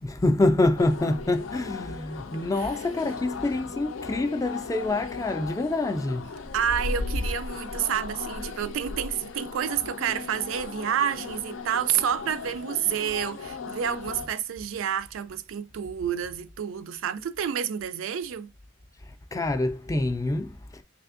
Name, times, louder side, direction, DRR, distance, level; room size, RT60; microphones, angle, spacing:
voice 1, 0.0-6.3 19.3-20.8, left 2 dB, 15° left, 0.3 m, -26 dB
sound 1, 0.8-14.3, left 3 dB, 80° left, 0.4 m, -36 dB
voice 2, 6.5-18.5, right 8 dB, 85° right, 0.3 m, -29 dB
3.3 x 3.3 x 2.4 m
head